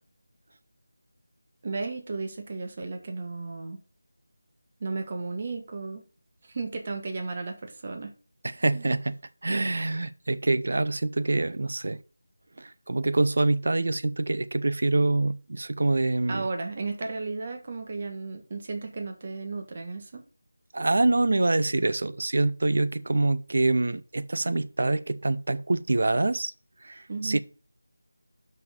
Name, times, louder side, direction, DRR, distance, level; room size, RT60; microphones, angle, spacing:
voice 1, 1.6-3.8 4.8-6.0 6.4-8.1 8.7-8.9 16.3-20.2 27.1-27.4, right 3 dB, 35° right, 1.6 m, -34 dB
voice 2, 8.4-9.2 9.4-12.0 12.6-16.4 20.7-26.5 26.8-27.4, right 2 dB, 60° right, 0.6 m, -25 dB
6.0 x 5.7 x 6.6 m
figure-of-eight pair, 170°, 0 cm